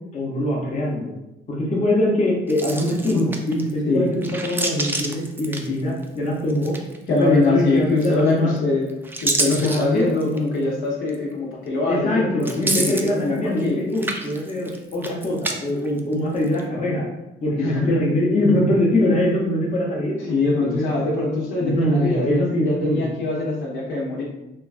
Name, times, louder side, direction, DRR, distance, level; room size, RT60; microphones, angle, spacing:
voice 1, 0.1-1.1 1.5-6.7 7.1-8.5 9.4-10.0 11.9-17.0 17.4-20.2 20.6-20.9 21.6-23.0, left 1 dB, 35° left, -3 dB, 0.8 m, -23 dB
sound 1, 2.5-3.7 4.1-6.2 6.5-7.2 8.0-8.5 8.9-10.5 11.1-11.2 12.4-13.7 13.9-15.5 15.8-16.6, right 2 dB, 10° right, 0.3 m, -28 dB
voice 2, 3.1-3.4 3.9-4.1 7.1-8.9 9.2-13.8 17.6-18.1 20.3-24.2, left 3 dB, 75° left, -3 dB, 0.8 m, -23 dB
3.1 x 2.3 x 2.4 m, 0.93 s
cardioid pair, 90°, 20 cm